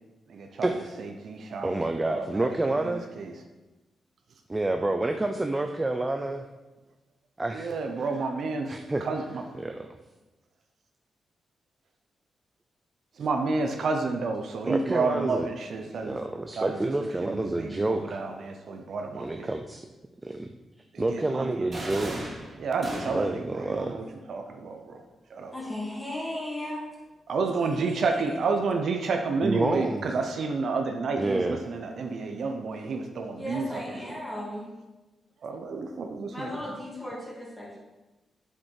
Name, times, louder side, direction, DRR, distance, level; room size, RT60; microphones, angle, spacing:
voice 1, 0.3-0.7 1.0-3.3 7.5-9.4 13.2-16.2 16.6-16.8 17.2-19.5 20.9-21.7 22.6-25.0 25.3-25.5 27.3-34.0 35.4-36.5, right 4 dB, 55° right, 4 dB, 0.9 m, -30 dB
voice 2, 1.6-3.1 4.5-6.4 7.4-8.1 8.7-9.0 9.6-10.0 14.6-15.5 15.9-18.2 19.1-19.9 20.2-20.5 21.0-22.3 23.1-24.0 29.4-30.1 31.2-31.6, right 2 dB, 15° right, 5 dB, 0.5 m, -29 dB
sound 1, 21.7-23.5, right 1 dB, 35° right, 2.3 m, -36 dB
voice 3, 25.5-26.9 33.4-34.7 36.3-37.8, left 1 dB, 10° left, -5 dB, 2.7 m, -35 dB
9.3 x 7.4 x 4.7 m, 1.1 s
wide cardioid pair, 170°, 0 cm